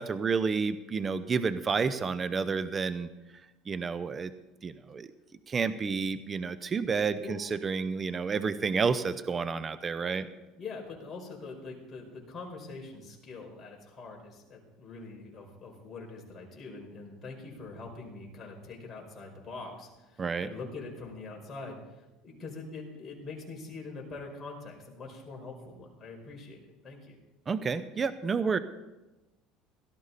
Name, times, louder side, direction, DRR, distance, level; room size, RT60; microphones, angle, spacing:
voice 1, 0.0-3.1 3.7-4.3 4.6-5.1 5.5-10.3 20.2-20.5 27.5-28.6, right 5 dB, 30° right, 14 dB, 0.8 m, -30 dB
voice 2, 10.1-26.6 26.8-27.2, left 3 dB, 30° left, -1 dB, 4.9 m, -44 dB
17.0 x 13.0 x 4.2 m, 1.0 s
supercardioid pair, 95°, 0 cm